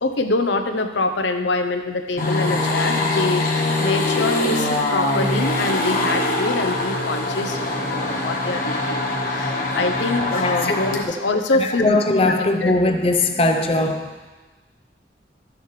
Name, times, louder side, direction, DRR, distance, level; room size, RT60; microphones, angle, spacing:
voice 1, 0.0-11.8 12.3-12.8, left 2 dB, 90° left, 6 dB, 0.8 m, -25 dB
sound 1, 2.2-11.0, left 2 dB, 50° left, 1.4 m, -23 dB
voice 2, 10.4-10.9 11.6-14.3, left 2 dB, 30° left, 5 dB, 0.7 m, -20 dB
13.5 x 7.0 x 3.3 m, 1.2 s
head